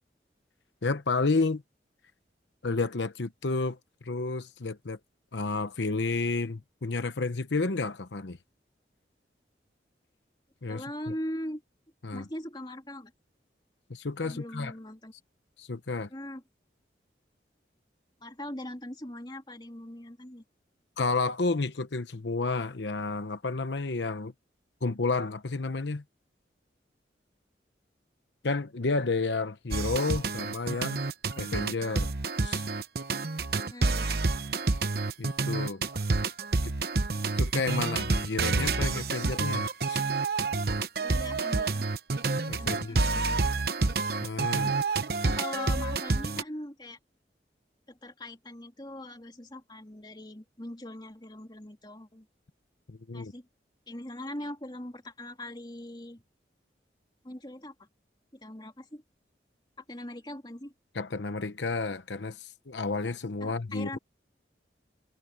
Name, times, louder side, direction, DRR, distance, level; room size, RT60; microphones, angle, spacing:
voice 1, 0.8-1.6 2.6-5.0 5.3-8.4 10.6-10.8 12.0-12.2 13.9-14.7 15.6-16.1 21.0-24.3 24.8-26.0 28.4-31.0 31.4-32.1 32.4-32.7 35.2-35.8 36.6-36.7 37.3-40.0 42.5-43.0 44.2-44.7 52.9-53.3 60.9-64.0, left 3 dB, 80° left, 0.9 m, -31 dB
voice 2, 10.7-11.6 12.1-13.1 14.2-15.1 16.1-16.4 18.2-20.4 33.7-34.3 41.0-41.9 42.6-43.4 45.2-47.0 47.9-52.3 53.1-53.5 53.9-56.2 57.2-57.9 58.3-59.0 59.8-60.7 63.4-64.0, left 1 dB, 25° left, 2.7 m, -41 dB
sound 1, 29.7-46.4, right 3 dB, 55° right, 0.9 m, -28 dB
head